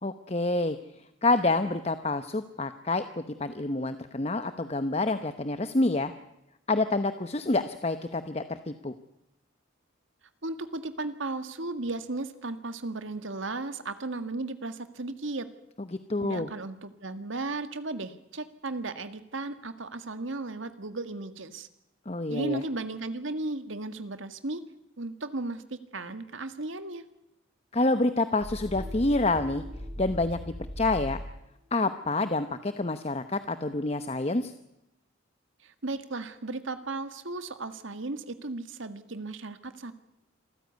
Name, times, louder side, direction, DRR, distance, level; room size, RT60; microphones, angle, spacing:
voice 1, 0.0-0.8 1.2-6.1 6.7-8.9 16.1-16.5 22.1-22.6 27.7-29.6 30.0-30.4 30.8-31.2 31.7-34.5, left 2 dB, 30° left, 10 dB, 0.9 m, -27 dB
voice 2, 10.4-15.5 16.2-21.7 22.3-24.6 25.0-27.0 35.6-39.9, right 2 dB, 75° right, 10 dB, 1.8 m, -35 dB
sound 1, 28.4-31.4, equal, 30° right, 5.2 m, -38 dB
26.5 x 15.0 x 9.4 m, 0.88 s
head